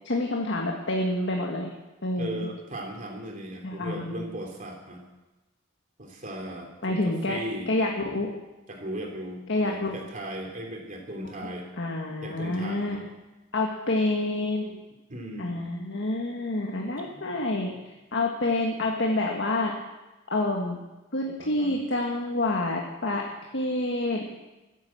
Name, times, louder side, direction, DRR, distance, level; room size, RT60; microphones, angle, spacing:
voice 1, 0.0-1.7 2.0-2.5 3.6-4.3 6.8-7.4 7.7-8.3 9.5-10.0 11.8-13.0 13.5-14.8 15.4-17.7 18.1-19.7 20.3-20.8 21.1-23.2 23.5-24.2, left 2 dB, 65° left, 0 dB, 1.7 m, -28 dB
voice 2, 2.2-5.0 6.0-7.7 8.7-11.7 12.2-13.0 15.1-15.6 17.0-17.2 21.4-21.7, right 1 dB, 40° right, 1 dB, 3.1 m, -37 dB
14.5 x 10.5 x 7.5 m, 1.1 s
head